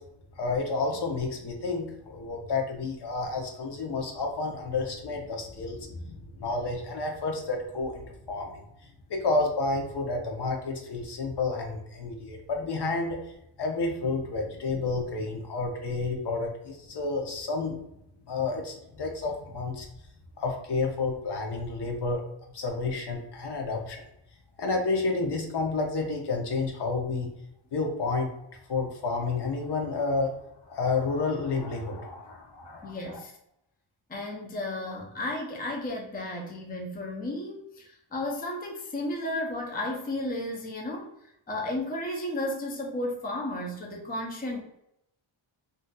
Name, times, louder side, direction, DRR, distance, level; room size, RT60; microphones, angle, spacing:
voice 1, 0.4-8.6 9.1-17.8 18.3-19.9 20.4-22.2 22.5-24.0 24.6-27.3 27.7-28.3 28.7-30.4 30.7-33.2, left 3 dB, 55° left, 2 dB, 0.7 m, -30 dB
voice 2, 32.8-33.3 34.1-41.1 41.5-44.6, left 1 dB, 20° left, 0 dB, 0.5 m, -33 dB
3.9 x 2.6 x 2.2 m, 0.80 s
wide cardioid pair, 135°, 49 cm